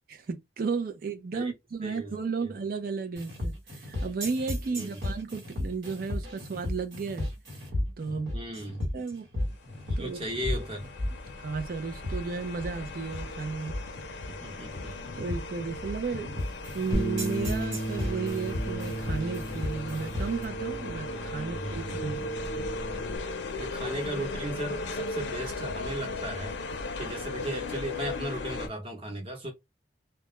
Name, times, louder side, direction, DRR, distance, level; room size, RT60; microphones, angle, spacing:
voice 1, 0.1-7.3 8.0-8.3 8.9-9.3 10.0-10.2 11.4-13.7 15.2-22.7, right 4 dB, 50° right, 0.4 m, -34 dB
voice 2, 1.8-2.5 4.7-4.9 8.3-8.8 9.9-10.8 14.3-15.0 21.3-22.2 23.6-29.5, right 1 dB, 30° right, 0.8 m, -37 dB
sound 1, 3.2-20.4, left 1 dB, 75° right, 1.1 m, -35 dB
sound 2, 9.7-28.7, left 2 dB, 85° left, 0.5 m, -37 dB
Bass guitar, 16.9-23.2, right 1 dB, 30° left, 0.5 m, -36 dB
2.2 x 2.1 x 2.9 m
head